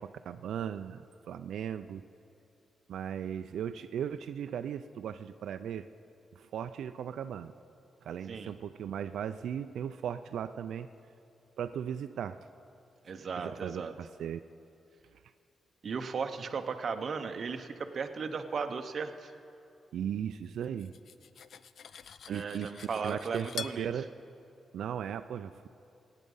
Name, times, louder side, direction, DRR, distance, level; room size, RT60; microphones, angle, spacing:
voice 1, 0.0-2.0 2.9-5.9 6.4-7.5 8.0-10.9 11.6-12.4 13.4-14.4 19.9-20.9 22.3-22.7 23.0-24.1 24.7-25.7, right 9 dB, 90° right, 10 dB, 0.3 m, -37 dB
voice 2, 13.0-13.9 15.8-19.3 22.3-23.9, right 5 dB, 45° right, 7 dB, 0.7 m, -36 dB
Cutlery silverware, 20.6-23.8, left 7 dB, 55° left, 0.3 m, -45 dB
22.0 x 9.1 x 5.4 m, 2.6 s
wide cardioid pair, 165°, 0 cm